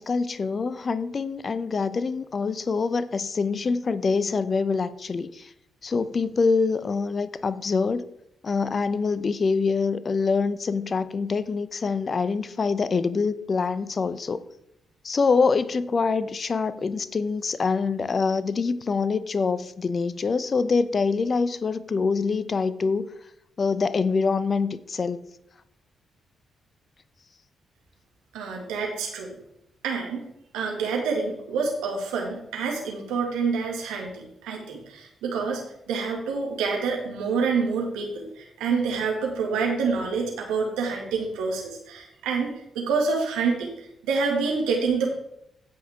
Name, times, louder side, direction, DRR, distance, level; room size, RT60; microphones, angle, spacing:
voice 1, 0.0-5.5 5.8-8.0 8.4-14.4 15.0-23.1 23.6-25.2, left 4 dB, 45° left, 15 dB, 0.7 m, -25 dB
voice 2, 28.3-29.4 29.8-30.3 30.5-45.1, right 5 dB, 75° right, 1 dB, 2.2 m, -27 dB
15.5 x 5.7 x 3.7 m, 0.79 s
hypercardioid pair, 40°, 0 cm